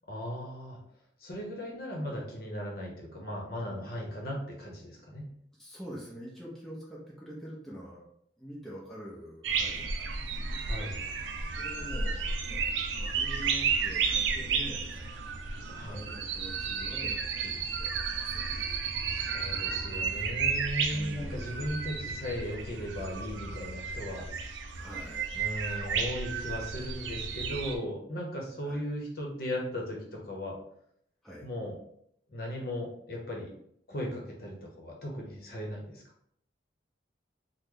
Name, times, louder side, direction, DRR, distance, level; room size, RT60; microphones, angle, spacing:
voice 1, 0.1-0.8 1.2-5.3 10.6-11.0 15.7-16.0 19.1-24.3 25.3-30.6 31.4-31.7 32.3-33.5 33.9-36.0, equal, 55° left, -1 dB, 0.8 m, -37 dB
voice 2, 5.6-8.0 8.4-10.2 11.6-15.2 15.9-18.9 20.9-21.7 24.8-25.5 28.6-28.9 31.2-31.4, equal, ahead, -6 dB, 0.6 m, -45 dB
sound 1, 9.4-27.8, right 5 dB, 80° right, 0.4 m, -33 dB
3.1 x 2.1 x 3.6 m, 0.69 s
head